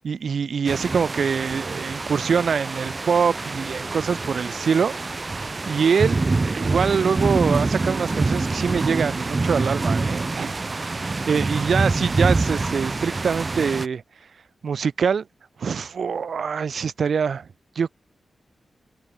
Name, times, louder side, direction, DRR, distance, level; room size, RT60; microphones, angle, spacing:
voice 1, 0.0-4.9 5.7-10.6 11.3-14.0 14.6-15.3 15.6-17.5 17.7-17.9, right 6 dB, 60° right, 1.6 m, -24 dB
sound 1, 0.7-13.9, right 3 dB, 25° right, 3.4 m, -26 dB
wide cardioid pair, 160°, 0 cm